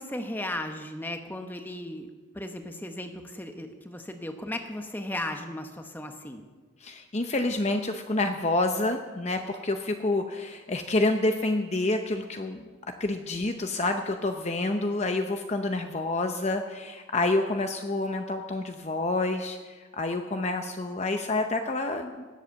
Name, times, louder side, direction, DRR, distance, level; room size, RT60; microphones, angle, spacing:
voice 1, 0.0-2.1 2.3-6.4, left 1 dB, 10° left, 5 dB, 1.0 m, -36 dB
voice 2, 6.8-12.6 13.0-22.3, left 2 dB, 35° left, 5 dB, 0.7 m, -28 dB
19.0 x 8.1 x 7.0 m, 1.3 s
head